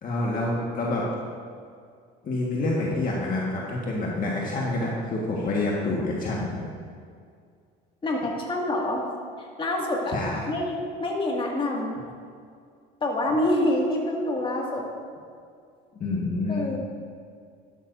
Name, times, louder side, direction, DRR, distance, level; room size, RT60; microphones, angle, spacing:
voice 1, 0.0-1.1 2.2-6.7 10.1-10.4 16.0-16.7, left 2 dB, 45° left, -3 dB, 1.7 m, -27 dB
voice 2, 8.0-9.0 9.4-10.2 10.5-12.0 13.0-14.8 16.5-16.8, left 1 dB, 25° left, -1 dB, 2.2 m, -26 dB
12.5 x 11.5 x 2.7 m, 2.2 s
cardioid pair, 100°, 20 cm